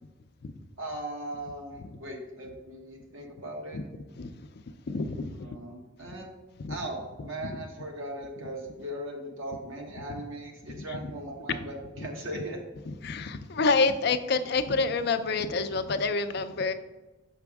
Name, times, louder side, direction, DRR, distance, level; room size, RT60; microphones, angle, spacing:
voice 1, 0.8-3.8 5.4-6.3 6.7-11.8 12.0-12.6, right 1 dB, 85° right, 1 dB, 1.3 m, -38 dB
voice 2, 4.9-5.5 6.0-6.1 6.6-6.8 7.2-7.6 10.1-10.2 10.8-11.1 11.5-11.6 12.0-12.1 12.9-16.7, left 4 dB, 55° left, 9 dB, 0.4 m, -28 dB
6.1 x 5.6 x 3.5 m, 1.1 s
head